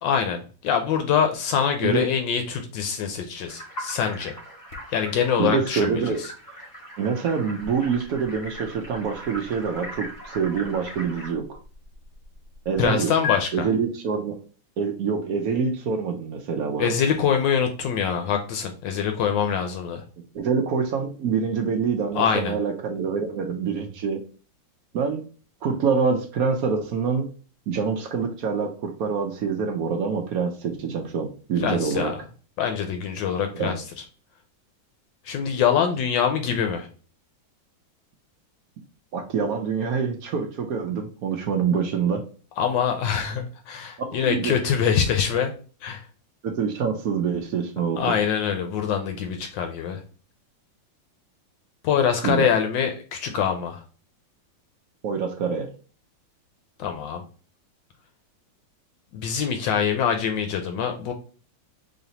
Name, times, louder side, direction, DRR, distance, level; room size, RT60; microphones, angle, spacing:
voice 1, 0.0-4.4 4.9-6.0 12.8-13.7 16.8-20.0 22.1-22.6 31.6-32.2 32.6-33.8 35.2-36.9 42.6-45.5 45.8-46.0 48.0-50.0 51.8-53.8 56.8-57.2 59.1-61.1, left 7 dB, 80° left, 5 dB, 1.3 m, -24 dB
sound 1, 3.5-11.3, right 1 dB, 20° left, 1.1 m, -40 dB
sound 2, 4.7-12.9 13.2-13.4, left 8 dB, 55° left, 0.8 m, -40 dB
voice 2, 5.4-6.2 7.0-11.6 12.7-13.1 13.5-14.4 14.8-16.9 20.3-24.2 24.9-25.2 25.6-27.3 27.7-32.1 33.5-33.7 39.1-42.2 44.1-44.6 46.4-48.0 52.2-52.5 55.0-55.7, right 6 dB, 70° right, 3 dB, 0.9 m, -25 dB
4.1 x 3.2 x 2.8 m, 0.39 s
omnidirectional pair, 2.1 m